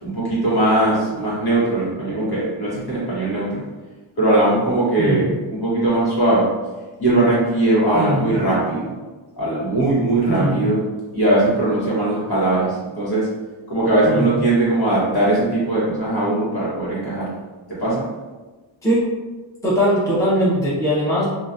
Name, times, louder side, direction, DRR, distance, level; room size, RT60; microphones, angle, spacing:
voice 1, 0.0-3.6 4.2-6.5 7.0-8.9 9.4-10.8 11.1-13.3 13.7-17.3 17.7-18.1, right 2 dB, 50° left, -8 dB, 1.4 m, -20 dB
voice 2, 7.9-8.3 10.3-10.6 14.1-14.3 18.8-19.1 19.6-21.2, equal, 5° left, -10 dB, 1.0 m, -20 dB
2.9 x 2.5 x 2.6 m, 1.2 s
wide cardioid pair, 125°, 48 cm